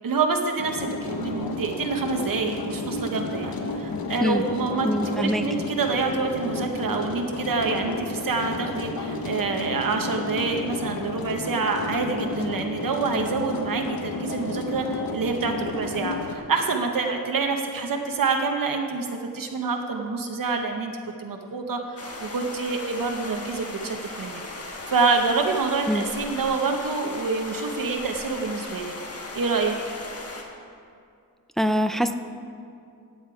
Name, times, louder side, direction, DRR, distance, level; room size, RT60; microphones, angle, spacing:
voice 1, 0.0-4.9 5.2-20.9 21.2-28.9 29.3-29.7, right 4 dB, 65° right, 3 dB, 0.9 m, -27 dB
sound 1, 0.6-16.3, left 3 dB, 80° left, 1.2 m, -32 dB
voice 2, 4.8-5.4 25.9-26.0 31.6-32.1, equal, ahead, 8 dB, 0.4 m, -23 dB
sound 2, 22.0-30.4, left 2 dB, 40° left, 1.5 m, -37 dB
16.0 x 8.8 x 4.8 m, 2.4 s
wide cardioid pair, 155°, 36 cm